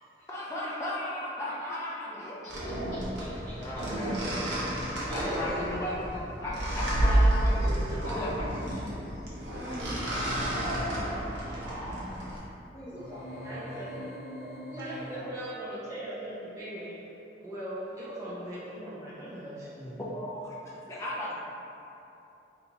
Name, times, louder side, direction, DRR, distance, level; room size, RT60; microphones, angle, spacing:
voice 1, 0.3-2.4 3.6-4.5 5.1-6.0 6.4-8.5 19.8-20.5 20.9-21.4, left 1 dB, 15° left, -6 dB, 0.4 m, -35 dB
sound 1, 2.5-12.4, right 1 dB, 85° right, 0.8 m, -30 dB
voice 2, 2.6-3.5 5.1-5.9 6.1-6.6 9.0-10.0 12.7-15.4, equal, 40° left, -14 dB, 1.3 m, -45 dB
voice 3, 11.2-12.0, equal, 50° right, -9 dB, 0.9 m, -58 dB
sound 2, 13.0-15.6, equal, 70° left, 0.5 m, -43 dB
voice 4, 13.4-14.0 14.8-17.1 17.4-19.8, right 1 dB, 15° right, -10 dB, 0.7 m, -39 dB
3.3 x 2.6 x 2.8 m, 2.9 s
head